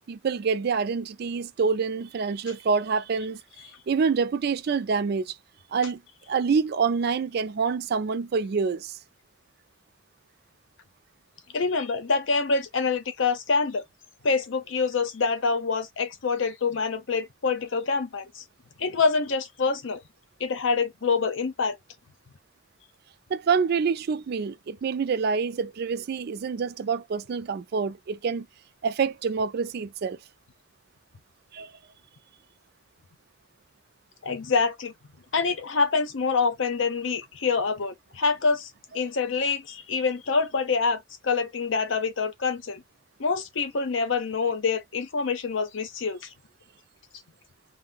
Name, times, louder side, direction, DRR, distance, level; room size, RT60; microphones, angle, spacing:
voice 1, 0.1-3.4 3.9-5.4 5.7-6.0 6.3-9.0 23.3-28.5 28.8-30.2 31.5-31.7, right 5 dB, 55° right, 0.3 m, -26 dB
voice 2, 11.5-13.8 14.2-18.4 18.8-20.0 20.4-21.8 34.2-34.9 35.3-42.8 43.2-46.3, left 4 dB, 75° left, 0.7 m, -26 dB
2.6 x 2.0 x 3.7 m
head